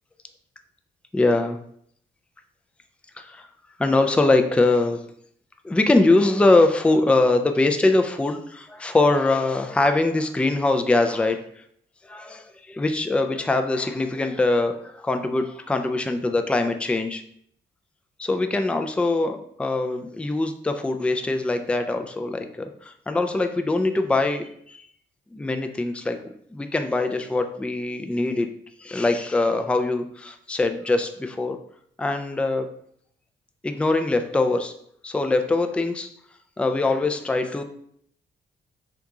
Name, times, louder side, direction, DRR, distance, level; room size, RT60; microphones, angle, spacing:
voice 1, 1.1-1.6 3.2-3.5 3.8-5.0 5.6-11.4 12.1-17.2 18.2-24.8 25.3-26.2 26.5-28.5 28.8-31.6 32.0-32.7 33.6-34.7 35.0-36.1 36.6-37.6, left 2 dB, 5° left, 6 dB, 0.3 m, -22 dB
2.8 x 2.4 x 3.6 m, 0.66 s
cardioid pair, 60°, 21 cm